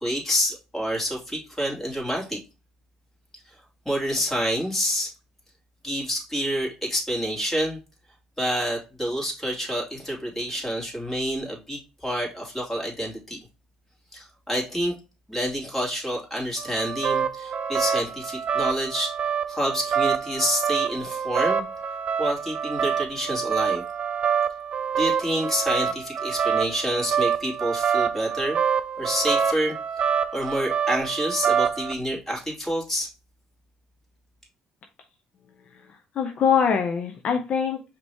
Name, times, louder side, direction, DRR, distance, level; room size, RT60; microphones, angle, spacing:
voice 1, 0.0-2.4 3.8-5.1 5.8-7.8 8.4-13.4 14.1-14.9 15.3-19.2 19.5-21.7 22.2-23.8 25.0-28.6 29.0-29.8 30.3-33.1, equal, 10° left, -2 dB, 2.4 m, -28 dB
sound 1, 16.6-31.9, right 7 dB, 50° right, 0.5 m, -26 dB
voice 2, 35.7-37.8, left 7 dB, 55° left, 4 dB, 0.7 m, -24 dB
5.1 x 3.0 x 3.4 m, 0.29 s
supercardioid pair, 65°, 3 cm